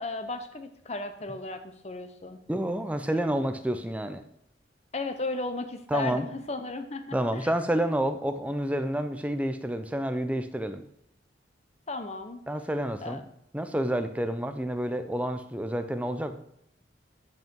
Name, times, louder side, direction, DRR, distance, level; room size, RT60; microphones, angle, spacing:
voice 1, 0.0-2.4 4.9-7.5 11.9-12.4 13.0-13.2, left 2 dB, 35° left, 8 dB, 0.8 m, -35 dB
voice 2, 2.5-4.2 5.9-6.3 7.1-10.8 12.5-13.2 13.5-16.3, right 1 dB, 5° right, 8 dB, 0.5 m, -29 dB
9.3 x 5.4 x 4.5 m, 0.75 s
head